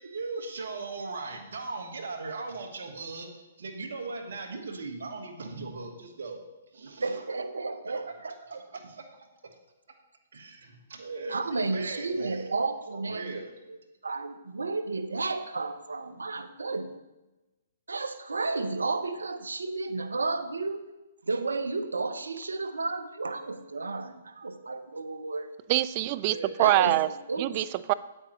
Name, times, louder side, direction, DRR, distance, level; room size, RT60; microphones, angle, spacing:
voice 1, 0.0-6.4 6.7-7.2 8.0-9.3 10.3-12.6 12.9-13.5 26.3-26.5, right 3 dB, 75° right, 4 dB, 1.5 m, -39 dB
voice 2, 7.0-8.3 11.3-13.4 13.7-13.8 14.0-17.0 17.9-20.9 21.2-25.5 26.6-27.7, right 3 dB, 90° right, 10 dB, 0.7 m, -32 dB
voice 3, 25.7-27.1 27.4-27.9, right 16 dB, 40° right, 17 dB, 0.3 m, -25 dB
8.8 x 8.6 x 3.1 m, 1.0 s
hypercardioid pair, 130°, 0 cm